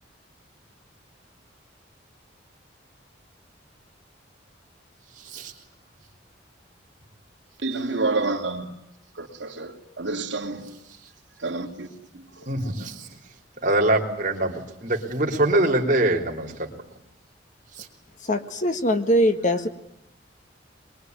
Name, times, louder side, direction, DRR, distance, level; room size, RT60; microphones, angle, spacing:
voice 1, 5.2-5.5 12.5-13.1 13.6-16.7 17.8-17.9, right 1 dB, 45° right, 3.5 m, -24 dB
voice 2, 7.6-8.8 9.1-10.8 11.4-11.9 12.1-12.2, right 3 dB, 70° right, 2.9 m, -29 dB
voice 3, 18.2-19.7, equal, 40° left, 1.6 m, -22 dB
23.0 x 22.5 x 9.5 m
head